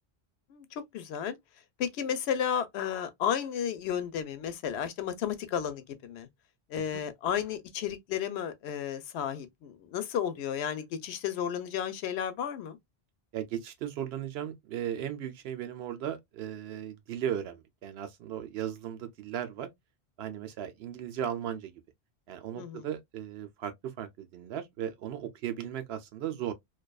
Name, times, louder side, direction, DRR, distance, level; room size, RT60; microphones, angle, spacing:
voice 1, 0.9-1.4 1.8-6.3 6.7-12.8 22.6-22.9, left 8 dB, 85° left, 0.8 m, -33 dB
voice 2, 13.3-19.7 20.2-21.7 22.3-26.5, right 10 dB, 75° right, 0.8 m, -36 dB
2.5 x 2.3 x 2.2 m
omnidirectional pair, 1.1 m